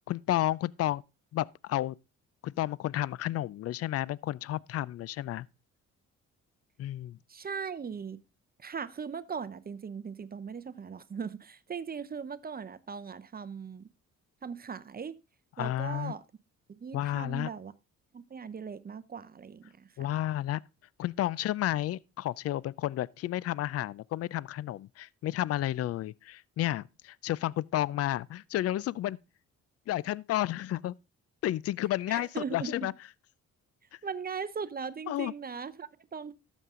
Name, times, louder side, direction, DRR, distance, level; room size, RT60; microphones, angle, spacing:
voice 1, 0.1-1.0 1.3-2.0 2.4-5.5 6.8-7.2 15.6-16.1 16.9-17.5 20.0-20.6 21.0-29.2 29.9-30.9 31.4-32.9 35.1-35.3, left 13 dB, 55° left, 0.4 m, -31 dB
voice 2, 7.3-8.2 8.6-13.9 14.4-15.2 15.6-16.2 16.7-17.7 18.1-19.9 32.1-32.9 34.0-36.3, right 6 dB, 30° right, 0.7 m, -39 dB
12.5 x 7.3 x 3.7 m
cardioid pair, 90°, 30 cm